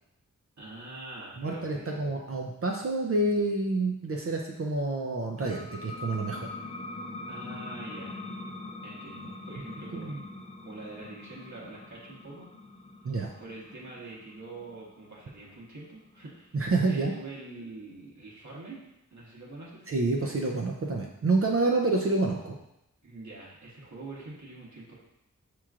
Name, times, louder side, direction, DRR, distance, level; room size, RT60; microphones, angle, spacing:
voice 1, 0.6-2.3 7.3-8.2 8.8-10.3 10.6-12.5 13.4-16.6 16.8-18.8 19.1-19.9 23.0-24.9, right 2 dB, 65° right, -5 dB, 1.2 m, -45 dB
voice 2, 1.4-6.5 9.9-10.2 13.0-13.3 16.5-17.1 19.9-22.6, right 2 dB, 45° right, 0 dB, 0.5 m, -28 dB
sound 1, 5.4-16.6, left 2 dB, 20° left, 0.4 m, -43 dB
5.7 x 3.0 x 2.4 m, 0.86 s
wide cardioid pair, 80°, 32 cm